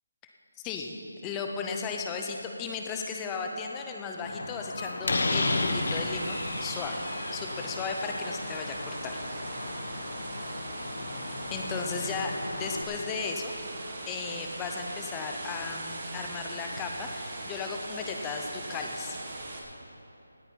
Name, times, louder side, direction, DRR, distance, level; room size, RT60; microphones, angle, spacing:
voice 1, 0.6-0.9 1.2-7.0 7.3-9.2 11.5-13.5 14.1-19.2, left 5 dB, 10° left, 2 dB, 0.6 m, -35 dB
Slam, 4.2-12.8, left 2 dB, 55° left, 1.2 m, -34 dB
sound 1, 5.4-19.6, right 2 dB, 30° right, 1.4 m, -40 dB
18.0 x 9.9 x 4.6 m, 2.9 s
figure-of-eight pair, 175°, 0 cm